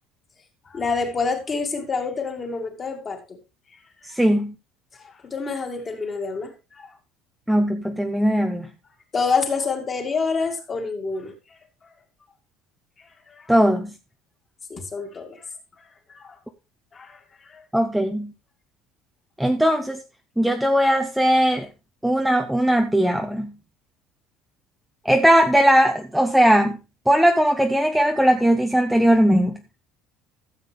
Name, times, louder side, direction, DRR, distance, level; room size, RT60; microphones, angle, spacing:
voice 1, 0.7-3.4 4.9-6.9 9.1-11.3 13.3-13.5 14.7-15.5 16.1-16.4 16.9-17.2 17.5-17.6, left 4 dB, 20° left, 2.1 m, -27 dB
voice 2, 4.0-4.5 7.5-8.7 13.5-13.9 17.7-18.3 19.4-20.0 20.4-21.7 22.0-23.5 25.0-26.8 27.1-29.6, equal, ahead, 0.7 m, -19 dB
13.5 x 7.3 x 3.4 m
cardioid pair, 160°, 0 cm